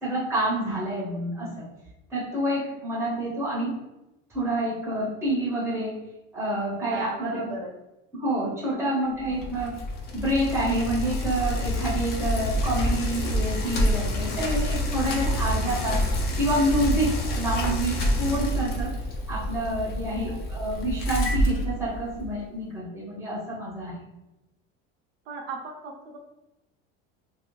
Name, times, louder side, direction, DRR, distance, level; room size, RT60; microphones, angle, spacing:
voice 1, 0.0-1.6 2.1-3.7 4.3-6.0 6.3-7.5 8.1-9.7 10.1-18.9 19.3-23.9, right 1 dB, 10° right, -6 dB, 0.7 m, -28 dB
voice 2, 6.9-7.7 8.7-9.1 20.1-20.4 25.3-26.2, right 3 dB, 45° right, -1 dB, 0.6 m, -37 dB
Bicycle, 9.2-22.4, left 1 dB, 35° left, 0.5 m, -27 dB
2.7 x 2.6 x 3.1 m, 0.95 s
cardioid pair, 165°, 29 cm